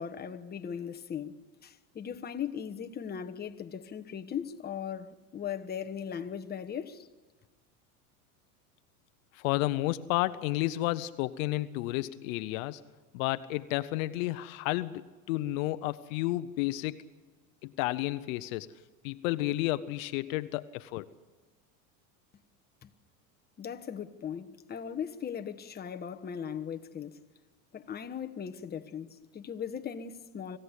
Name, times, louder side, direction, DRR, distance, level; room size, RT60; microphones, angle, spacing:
voice 1, 0.0-7.1 22.8-22.9 23.6-27.2 27.7-30.6, left 8 dB, 20° left, 1.2 m, -38 dB
voice 2, 9.4-12.8 13.1-17.0 17.6-18.7 19.0-21.1, left 17 dB, 65° left, 0.9 m, -31 dB
26.0 x 16.0 x 8.3 m
supercardioid pair, 110°, 43 cm